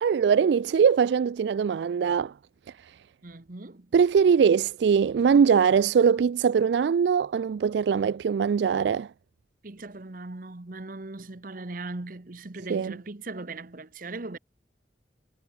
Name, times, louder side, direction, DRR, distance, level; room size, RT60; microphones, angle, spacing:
voice 1, 0.0-2.3 2.8-3.0 3.9-9.1 12.7-12.9, right 6 dB, 70° right, 0.3 m, -22 dB
voice 2, 3.2-3.9 9.6-14.4, right 2 dB, 50° right, 1.0 m, -39 dB
head